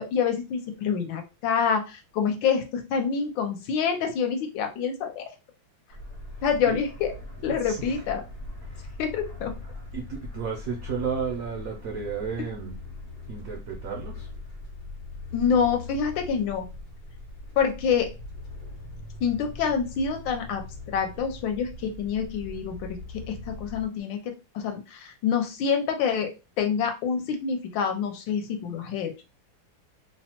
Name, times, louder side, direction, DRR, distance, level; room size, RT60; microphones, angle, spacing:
voice 1, 0.0-5.2 6.4-7.1 7.4-8.2 9.0-9.5 15.3-16.7 17.6-18.1 19.2-20.6 20.9-26.3 26.6-29.1, left 6 dB, 75° left, 5 dB, 1.3 m, -27 dB
sound 1, 5.9-23.9, left 2 dB, 60° left, 1.2 m, -41 dB
voice 2, 7.6-7.9 8.6-8.9 9.9-12.8 13.3-14.3, right 6 dB, 80° right, 1 dB, 0.7 m, -33 dB
3.2 x 2.1 x 2.8 m, 0.28 s
omnidirectional pair, 2.1 m